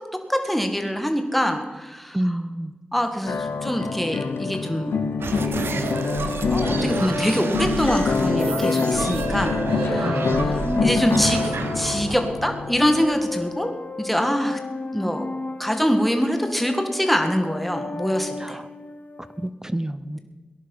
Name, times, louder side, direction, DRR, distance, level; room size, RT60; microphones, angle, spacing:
voice 1, 0.3-2.4 2.9-4.9 6.5-13.7 14.0-14.6 14.9-15.3 15.6-18.6, equal, 5° left, 5 dB, 1.8 m, -24 dB
voice 2, 2.1-2.7 10.0-10.9 18.4-18.6 19.4-20.2, right 1 dB, 15° right, 14 dB, 0.7 m, -28 dB
sound 1, 3.3-13.1, left 5 dB, 90° left, 0.8 m, -26 dB
sound 2, 4.0-19.5, left 3 dB, 50° left, 1.2 m, -34 dB
sound 3, 5.2-13.4, right 4 dB, 85° right, 1.0 m, -29 dB
18.0 x 11.0 x 5.4 m, 1.3 s
cardioid pair, 55°, 4 cm